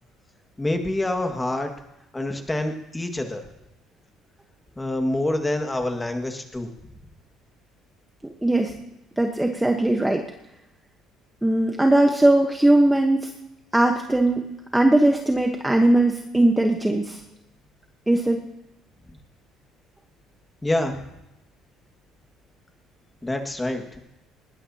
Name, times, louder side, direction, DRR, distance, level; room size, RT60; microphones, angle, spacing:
voice 1, 0.6-1.7 2.1-3.4 4.8-6.7 20.6-21.0 23.2-24.0, left 1 dB, 10° left, 5 dB, 1.9 m, -26 dB
voice 2, 8.4-8.7 9.2-10.2 11.4-13.3 13.7-17.2 18.1-18.4, right 1 dB, 5° right, 3 dB, 1.1 m, -19 dB
20.0 x 19.0 x 2.9 m, 0.89 s
cardioid pair, 130°, 0 cm